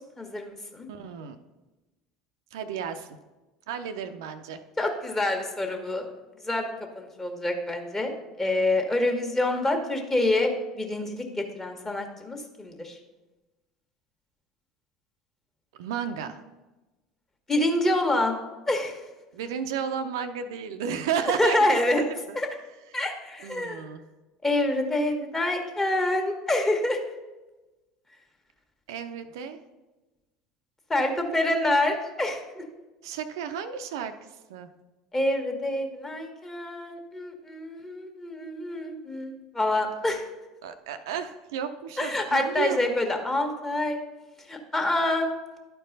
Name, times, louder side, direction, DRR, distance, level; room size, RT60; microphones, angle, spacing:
voice 1, 0.2-0.9 4.8-6.0 6.4-6.7 6.9-13.0 17.5-18.4 18.7-19.0 21.4-22.0 22.3-22.5 22.9-23.9 24.4-27.0 30.9-32.6 35.1-40.2 42.0-44.0 44.5-45.3, left 1 dB, 20° left, 3 dB, 1.4 m, -27 dB
voice 2, 0.9-1.4 2.5-3.1 3.7-4.6 15.7-16.4 19.3-21.6 22.0-22.4 23.4-24.0 28.9-29.6 33.0-34.1 34.5-34.7 40.6-42.8, right 7 dB, 70° right, 8 dB, 0.5 m, -32 dB
11.5 x 4.6 x 4.0 m, 1.1 s
figure-of-eight pair, 70°, 2 cm